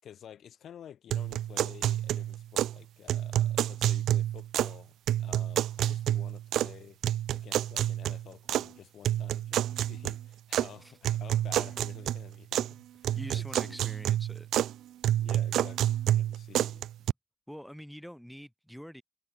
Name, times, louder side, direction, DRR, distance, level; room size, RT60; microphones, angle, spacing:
voice 1, 0.0-4.9 5.2-7.0 7.3-13.8 15.2-16.9, left 9 dB, 65° left, 7.4 m, -50 dB
sound 1, 1.1-2.8 3.1-4.8 5.1-6.8 7.0-8.7 9.0-10.7 11.0-12.7 13.0-14.7 15.0-17.1, right 12 dB, 80° right, 0.8 m, -29 dB
voice 2, 13.2-14.5 17.5-19.0, equal, ahead, 3.6 m, -45 dB
cardioid pair, 90°, 0 cm